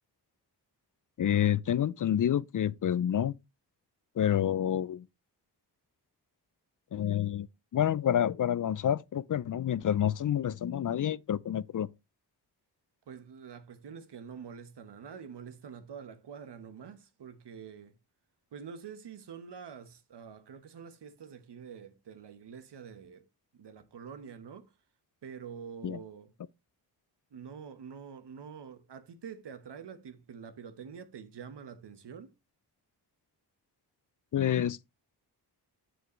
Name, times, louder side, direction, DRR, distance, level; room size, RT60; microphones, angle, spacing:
voice 1, 1.2-3.4 4.2-5.0 6.9-7.5 7.7-11.9 25.8-26.0 34.3-34.8, left 10 dB, 50° left, 0.5 m, -28 dB
voice 2, 13.1-17.9 18.5-23.2 23.5-24.7 25.2-26.3 27.3-32.3, right 7 dB, 75° right, 1.2 m, -46 dB
7.9 x 7.3 x 3.1 m
cardioid pair, 65°, 41 cm